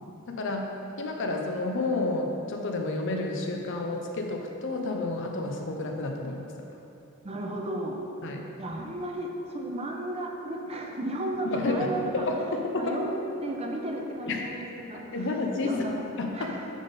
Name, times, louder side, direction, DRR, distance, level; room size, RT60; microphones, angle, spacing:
voice 1, 0.0-6.5 8.2-8.5 11.5-11.9 12.1-13.0 14.3-14.4 15.0-15.8 16.2-16.6, left 2 dB, 60° left, 2 dB, 0.6 m, -30 dB
voice 2, 7.2-8.0 8.6-12.3 12.7-15.4 15.6-16.0 16.3-16.7, right 1 dB, 30° right, 1 dB, 0.6 m, -34 dB
9.5 x 3.6 x 4.0 m, 2.9 s
head